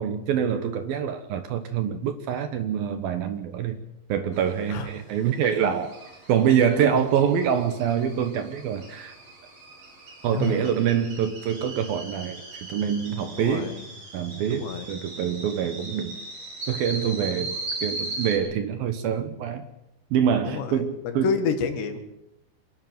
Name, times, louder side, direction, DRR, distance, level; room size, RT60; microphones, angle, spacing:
voice 1, 0.0-3.8 4.1-6.0 6.3-9.1 10.2-13.7 14.1-16.2 16.7-19.6 20.1-21.4, right 8 dB, 65° right, 2.6 m, -25 dB
sound 1, 4.3-18.4, right 2 dB, 30° right, 6.1 m, -39 dB
voice 2, 10.3-10.8 13.4-13.8 14.5-14.9 20.5-22.0, left 6 dB, 75° left, 4.0 m, -29 dB
26.5 x 11.0 x 9.4 m
omnidirectional pair, 5.1 m